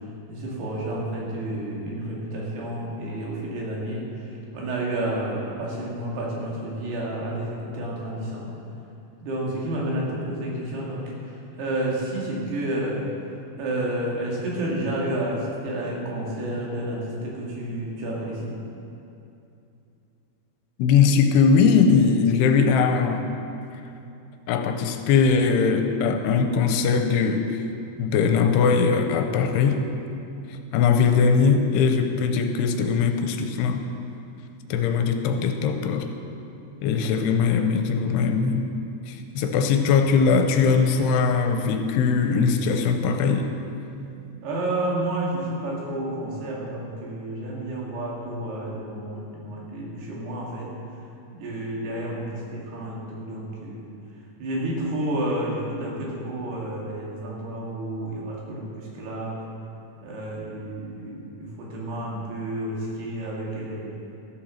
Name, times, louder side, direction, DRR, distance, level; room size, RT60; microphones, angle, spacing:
voice 1, 0.3-8.5 9.2-11.1 11.6-13.1 13.6-18.6 39.4-39.6 44.4-50.7 51.3-53.8 54.4-59.4 60.0-63.9, right 1 dB, 75° right, -4 dB, 4.1 m, -30 dB
voice 2, 20.8-23.3 24.5-27.6 28.0-29.8 30.7-33.8 34.7-36.1 36.8-38.7 39.1-43.5, left 5 dB, 85° left, 6 dB, 2.8 m, -20 dB
13.5 x 7.4 x 6.4 m, 2.7 s
omnidirectional pair, 4.7 m